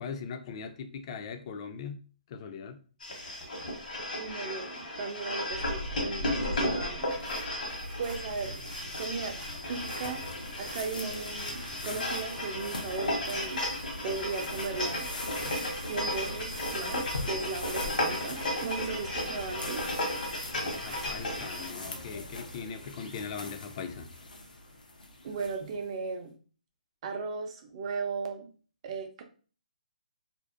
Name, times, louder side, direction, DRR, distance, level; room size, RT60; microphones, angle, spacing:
voice 1, 0.0-2.0 2.3-2.8 20.5-24.1, left 6 dB, 40° left, 8 dB, 0.4 m, -40 dB
sound 1, 3.0-21.7, left 1 dB, 75° left, 1.0 m, -35 dB
voice 2, 4.2-7.2 8.0-8.5 9.0-9.4 9.7-10.2 10.6-13.6 14.0-15.1 15.8-19.8 25.2-26.3 27.0-28.5 28.8-29.2, right 4 dB, 45° right, 4 dB, 0.5 m, -36 dB
sound 2, 5.5-21.4, left 1 dB, 85° right, 0.6 m, -44 dB
sound 3, 8.1-25.9, left 2 dB, 90° left, 0.6 m, -43 dB
2.5 x 2.0 x 2.4 m, 0.39 s
hypercardioid pair, 140°, 5 cm